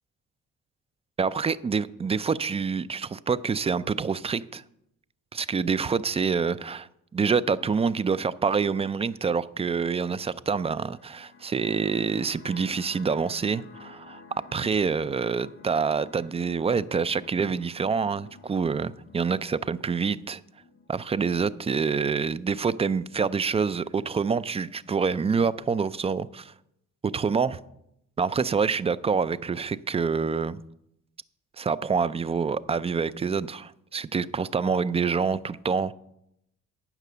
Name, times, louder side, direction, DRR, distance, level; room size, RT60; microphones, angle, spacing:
voice 1, 1.2-4.6 5.3-14.2 14.5-20.4 20.9-26.5 27.0-27.6 28.2-30.6 31.6-35.9, right 5 dB, 20° right, 18 dB, 0.3 m, -26 dB
sound 1, 10.9-21.9, left 4 dB, 45° left, 1.6 m, -51 dB
9.2 x 6.0 x 6.7 m, 0.79 s
cardioid pair, 90°, 30 cm